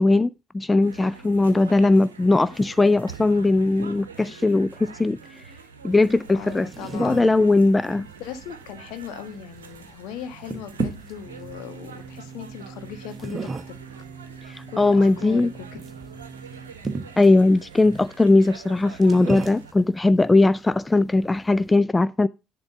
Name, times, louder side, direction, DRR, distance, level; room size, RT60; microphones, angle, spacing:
voice 1, 0.0-5.4 5.8-6.7 6.9-8.0 14.5-15.5 17.2-22.3, left 2 dB, 15° left, 0.3 m, -19 dB
sound 1, 0.8-19.7, right 6 dB, 80° right, 0.9 m, -44 dB
sound 2, 5.9-21.8, right 4 dB, 25° right, 1.2 m, -37 dB
voice 2, 6.3-7.3 8.0-13.8 14.7-15.7, left 8 dB, 60° left, 1.3 m, -38 dB
sound 3, 11.3-16.7, right 6 dB, 45° right, 0.9 m, -43 dB
10.5 x 3.6 x 6.8 m
figure-of-eight pair, 55°, 0 cm